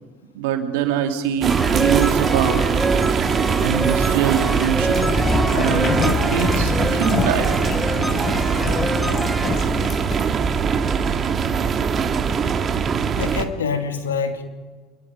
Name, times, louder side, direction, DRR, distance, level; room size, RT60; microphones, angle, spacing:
voice 1, 0.3-2.6 3.6-5.1 5.5-7.6, right 9 dB, 70° right, 4 dB, 3.0 m, -23 dB
sound 1, 1.4-13.4, right 6 dB, 35° right, 1.9 m, -22 dB
sound 2, 1.5-9.5, right 1 dB, 5° left, 3.6 m, -27 dB
sound 3, 4.9-10.2, left 6 dB, 35° left, 1.3 m, -26 dB
voice 2, 13.1-14.4, left 5 dB, 80° left, 5 dB, 2.4 m, -25 dB
27.0 x 22.0 x 5.3 m, 1.5 s
hypercardioid pair, 70°, 0 cm